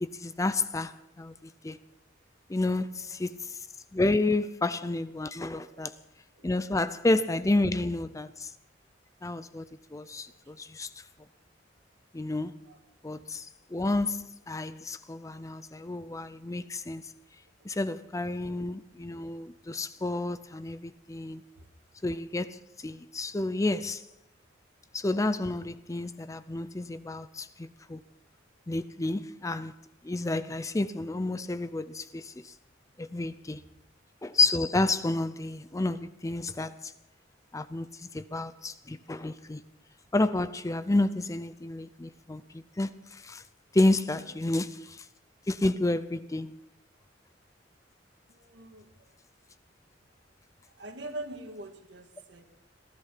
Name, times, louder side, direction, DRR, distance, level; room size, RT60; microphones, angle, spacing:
voice 1, 0.0-1.8 2.5-3.7 3.9-5.9 6.4-8.5 9.2-11.0 12.1-12.6 13.0-17.1 17.6-21.4 22.0-24.0 24.9-28.0 28.7-29.7 30.0-32.5 33.0-33.6 34.2-36.9 37.5-39.6 40.1-43.4 43.7-45.1 45.5-46.6, left 2 dB, 15° left, 0.5 m, -30 dB
voice 2, 2.6-3.2 5.4-6.0 6.3-6.9 7.6-7.8 10.0-10.5 12.6-12.8 17.6-17.8 21.6-21.7 44.0-44.4 48.3-49.2 50.7-52.4, right 1 dB, 65° right, 2.0 m, -45 dB
18.0 x 13.0 x 5.9 m
head